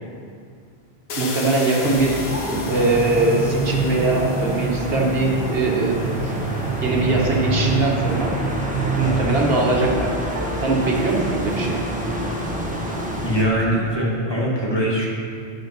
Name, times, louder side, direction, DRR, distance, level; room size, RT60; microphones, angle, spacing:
sound 1, 1.1-7.9, left 2 dB, 75° left, 1.2 m, -36 dB
voice 1, 1.2-2.2 2.7-6.0 6.2-6.3 6.8-8.3 9.0-10.1 10.6-11.8, right 2 dB, 65° right, -2 dB, 1.6 m, -21 dB
sound 2, 1.8-13.4, right 2 dB, 5° right, 1.2 m, -26 dB
sound 3, 9.0-12.7 13.1-14.2, right 2 dB, 80° right, 1.4 m, -37 dB
voice 2, 13.2-15.1, equal, 25° left, -4 dB, 1.9 m, -22 dB
9.0 x 6.5 x 6.0 m, 2.3 s
omnidirectional pair, 1.1 m